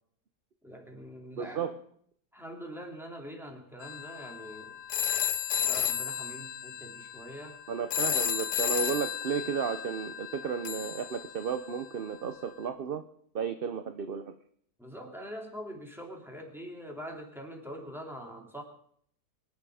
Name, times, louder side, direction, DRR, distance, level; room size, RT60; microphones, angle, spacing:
voice 1, 0.6-1.7 2.3-4.8 5.6-7.6 14.8-18.6, equal, ahead, 1 dB, 3.0 m, -43 dB
voice 2, 1.3-1.7 7.7-13.0 13.3-14.4, right 7 dB, 45° right, 9 dB, 0.8 m, -33 dB
sound 1, 3.8-11.9, left 9 dB, 85° left, 1.5 m, -33 dB
23.5 x 10.5 x 4.9 m, 0.64 s
omnidirectional pair, 1.7 m